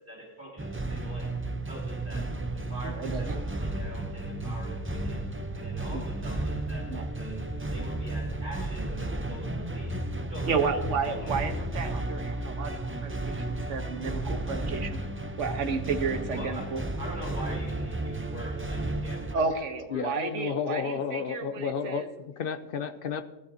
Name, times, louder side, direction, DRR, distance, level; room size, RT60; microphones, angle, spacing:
voice 1, 0.0-1.3 1.6-2.2 2.5-5.2 5.5-6.9 7.2-7.5 7.7-9.9 10.3-10.7 11.1-11.3 16.3-16.7 17.0-19.4 19.9-20.1, right 1 dB, 40° right, -5 dB, 3.6 m, -44 dB
sound 1, 0.6-19.3, right 2 dB, 20° right, 0.3 m, -33 dB
voice 2, 2.9-3.4 5.9-6.0 6.9-7.1 10.5-15.0 15.4-16.8 19.3-22.1, right 5 dB, 65° right, 7 dB, 1.4 m, -32 dB
voice 3, 19.9-23.2, left 7 dB, 55° left, 10 dB, 0.7 m, -32 dB
18.0 x 11.5 x 2.7 m, 1.1 s
omnidirectional pair, 1.3 m